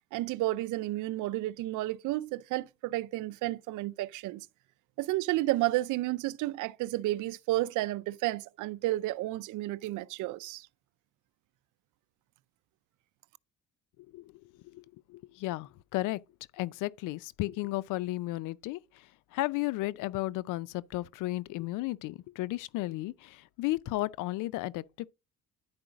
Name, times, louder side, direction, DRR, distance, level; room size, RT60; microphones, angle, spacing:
voice 1, 0.1-4.5 5.0-10.7, right 17 dB, 80° right, 0.5 m, -31 dB
voice 2, 14.6-16.2 16.5-18.8 19.3-25.1, left 18 dB, 85° left, 0.6 m, -34 dB
10.5 x 4.7 x 5.1 m
cardioid pair, 95°, 30 cm